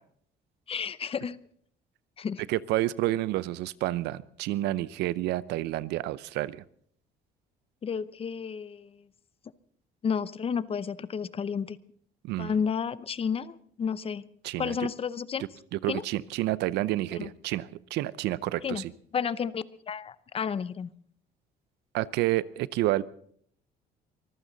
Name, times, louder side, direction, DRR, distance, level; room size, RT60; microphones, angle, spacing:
voice 1, 0.7-1.4 2.2-2.4 7.8-9.0 10.0-11.8 12.4-14.2 14.6-15.4 15.9-16.0 17.1-17.3 18.6-18.8 19.1-20.9, left 6 dB, 35° left, 17 dB, 0.7 m, -31 dB
voice 2, 2.5-6.6 12.2-12.5 14.4-14.8 15.7-18.9 21.9-23.0, right 16 dB, 85° right, 19 dB, 0.6 m, -29 dB
24.0 x 15.0 x 4.0 m, 0.63 s
cardioid pair, 110°, 17 cm